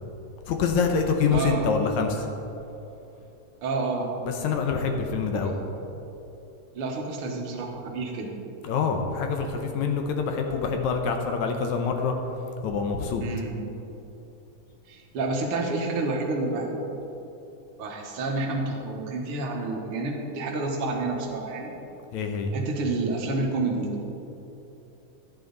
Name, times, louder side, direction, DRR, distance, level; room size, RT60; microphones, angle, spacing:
voice 1, 0.5-2.3 4.2-5.5 8.6-12.2 12.6-13.2 22.1-22.5, left 5 dB, 75° left, 4 dB, 1.9 m, -26 dB
voice 2, 1.3-1.7 3.6-4.1 5.3-5.5 6.7-8.3 13.2-13.6 14.9-16.8 17.8-21.7 22.5-24.0, right 3 dB, 55° right, 0 dB, 1.7 m, -29 dB
12.0 x 10.5 x 4.0 m, 3.0 s
omnidirectional pair, 3.9 m